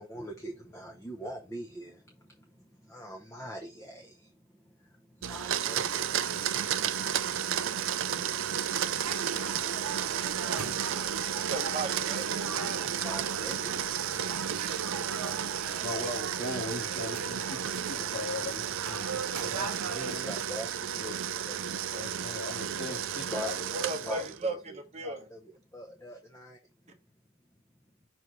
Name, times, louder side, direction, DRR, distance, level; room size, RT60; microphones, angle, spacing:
voice 1, 0.0-11.0 12.5-15.7 18.4-18.6 19.2-21.6 23.2-23.7 24.0-27.0, equal, 15° left, 0.7 m, -45 dB
Domestic sounds home sounds, 5.2-24.4, right 9 dB, 60° right, 0.5 m, -33 dB
sound 1, 9.0-20.2, right 5 dB, 85° right, 0.9 m, -39 dB
voice 2, 11.1-12.3 21.9-22.1 23.7-25.3, right 3 dB, 30° right, 1.0 m, -36 dB
voice 3, 15.8-20.3 21.9-24.3, left 2 dB, 45° left, 1.8 m, -39 dB
6.0 x 3.2 x 5.2 m
head